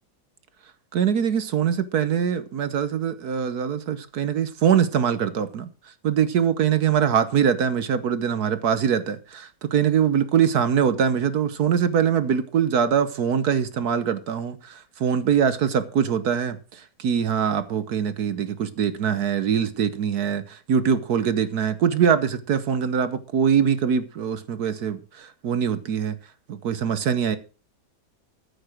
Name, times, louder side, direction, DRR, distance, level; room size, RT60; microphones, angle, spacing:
voice 1, 0.9-5.7 6.0-26.2 26.5-27.4, right 8 dB, 60° right, 1.3 m, -23 dB
14.0 x 6.7 x 6.2 m
omnidirectional pair, 2.0 m